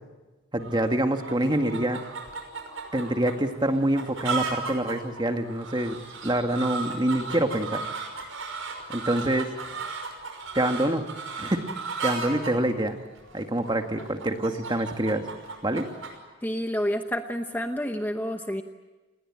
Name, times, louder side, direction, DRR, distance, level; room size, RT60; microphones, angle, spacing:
voice 1, 0.5-2.0 2.9-6.0 6.2-7.8 8.9-9.5 10.6-11.1 11.4-11.7 12.0-13.0 13.3-15.3 15.6-15.9, right 1 dB, 20° right, 5 dB, 1.8 m, -26 dB
sound 1, 0.6-16.2, right 4 dB, 75° right, 5.8 m, -36 dB
voice 2, 16.4-18.6, equal, 10° left, 6 dB, 0.9 m, -29 dB
29.0 x 20.5 x 8.8 m, 1.2 s
head